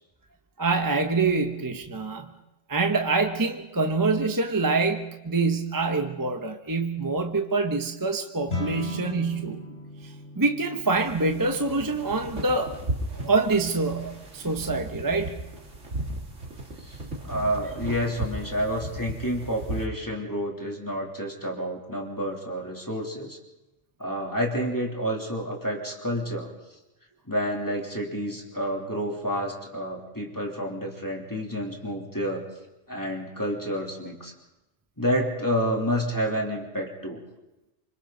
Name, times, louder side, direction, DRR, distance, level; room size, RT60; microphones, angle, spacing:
voice 1, 0.6-2.3 2.7-9.6 10.0-12.8 13.1-15.4, right 3 dB, 20° right, 5 dB, 0.9 m, -25 dB
sound 1, 8.5-18.0, left 2 dB, 65° left, 3.5 m, -41 dB
sound 2, 11.0-19.9, right 1 dB, 80° right, 2.8 m, -36 dB
voice 2, 17.2-23.4 24.0-26.5 27.3-32.4 32.9-34.3 35.0-37.2, equal, 15° left, -1 dB, 3.1 m, -29 dB
27.0 x 25.0 x 4.0 m, 0.97 s
omnidirectional pair, 1.3 m